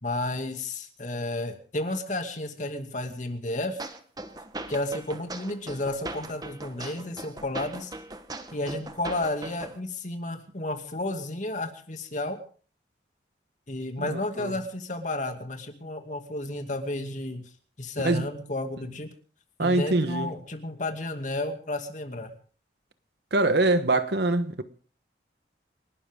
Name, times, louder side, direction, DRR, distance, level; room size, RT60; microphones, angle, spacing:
voice 1, 0.0-3.8 4.7-7.9 8.5-12.4 13.7-17.4 17.8-19.1 19.6-22.3, left 2 dB, 45° left, 2.5 m, -32 dB
sound 1, 3.8-9.8, right 2 dB, 20° right, 1.2 m, -39 dB
voice 2, 14.0-14.6 18.0-18.2 19.6-20.3 23.3-24.6, right 2 dB, 65° right, 1.2 m, -24 dB
29.0 x 12.5 x 3.7 m
head